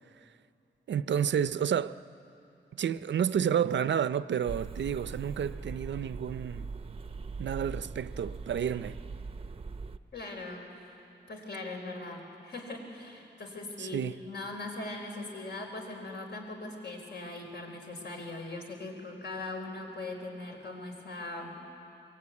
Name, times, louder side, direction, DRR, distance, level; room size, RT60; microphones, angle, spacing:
voice 1, 0.9-2.0 2.7-6.7 7.4-9.0 13.8-14.1, right 8 dB, 75° right, 0.5 m, -30 dB
sound 1, 4.5-10.0, right 4 dB, 30° right, 0.6 m, -41 dB
voice 2, 10.1-10.9 11.3-21.6, left 2 dB, 65° left, 4.7 m, -40 dB
24.5 x 22.5 x 9.6 m
wide cardioid pair, 170°, 19 cm